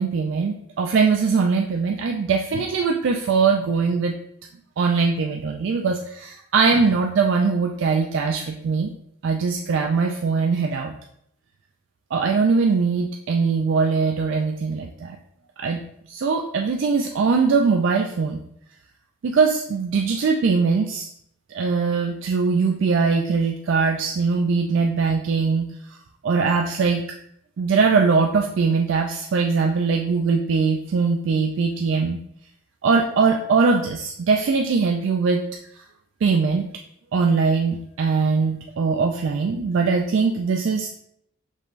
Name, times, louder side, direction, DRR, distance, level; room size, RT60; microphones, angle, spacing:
voice 1, 0.0-4.1 4.8-8.9 9.2-10.9 12.1-15.2 15.6-15.8 16.1-18.4 19.2-21.1 21.5-25.7 26.2-27.0 27.6-32.2 32.8-35.4 36.2-36.7 37.1-40.9, right 4 dB, 65° right, 3 dB, 0.3 m, -21 dB
5.4 x 3.1 x 2.4 m, 0.71 s
head